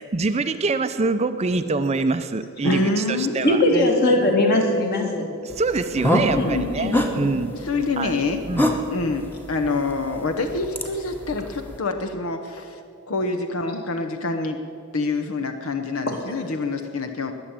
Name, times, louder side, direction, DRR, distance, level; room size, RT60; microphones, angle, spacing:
voice 1, 0.0-3.6 5.4-7.6 8.0-8.2 8.5-8.7, right 3 dB, 30° right, 10 dB, 0.5 m, -25 dB
voice 2, 2.6-3.9 6.4-6.7 7.5-8.4 8.9-12.8 13.1-14.6 14.9-17.3, left 3 dB, 70° left, 7 dB, 0.9 m, -26 dB
voice 3, 3.4-5.3 6.3-6.9 16.1-16.2, left 1 dB, 45° left, 1 dB, 2.4 m, -20 dB
sound 1, 5.5-11.8, equal, 10° left, 1.1 m, -28 dB
20.5 x 7.1 x 8.7 m, 2.4 s
head